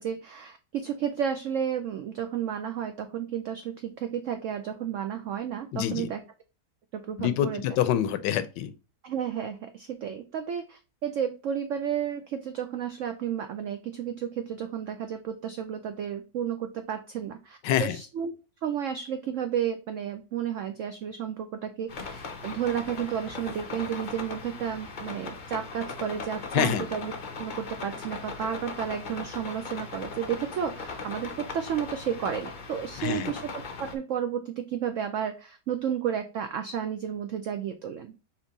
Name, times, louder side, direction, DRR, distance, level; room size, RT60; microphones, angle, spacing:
voice 1, 0.0-6.2 6.9-7.6 9.0-18.3 18.6-27.1 27.4-38.1, right 8 dB, 85° right, 0.6 m, -32 dB
voice 2, 5.7-6.1 7.2-8.7 17.6-18.0 26.5-26.9 33.0-33.3, left 10 dB, 85° left, 1.2 m, -26 dB
sound 1, 21.9-34.0, left 4 dB, 60° left, 0.4 m, -39 dB
4.4 x 2.8 x 3.8 m
omnidirectional pair, 1.9 m